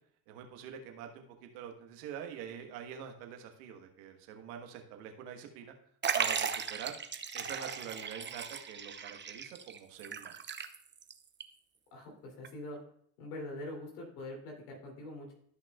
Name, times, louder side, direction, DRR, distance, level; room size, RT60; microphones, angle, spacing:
voice 1, 0.3-5.7 6.1-7.0 7.3-10.4, right 8 dB, 85° right, 4 dB, 1.4 m, -45 dB
Liquid, 6.0-11.1 11.4-11.5 12.4-12.5, right 6 dB, 25° right, 0.7 m, -36 dB
voice 2, 11.9-12.8 13.2-15.3, left 1 dB, 85° left, 0 dB, 3.1 m, -43 dB
13.5 x 5.9 x 2.4 m, 0.63 s
supercardioid pair, 80°, 46 cm